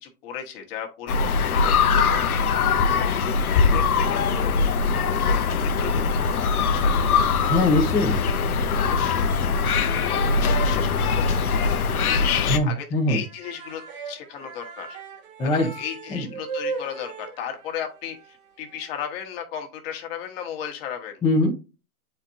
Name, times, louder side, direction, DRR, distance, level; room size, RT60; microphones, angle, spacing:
voice 1, 0.0-2.4 2.9-4.2 5.2-6.9 8.7-11.5 12.6-15.0 15.4-21.2, left 8 dB, 40° left, 3 dB, 1.4 m, -36 dB
sound 1, 1.1-12.6, left 5 dB, 80° left, 0.9 m, -22 dB
voice 2, 7.5-8.2 12.5-13.2 15.4-15.7 16.1-16.3 21.2-21.5, left 2 dB, 10° left, -2 dB, 0.9 m, -21 dB
sound 2, 12.1-12.2 12.6-12.7 13.1-19.1, right 4 dB, 50° right, 2.1 m, -38 dB
8.0 x 4.4 x 2.7 m, 0.30 s
hypercardioid pair, 130°, 43 cm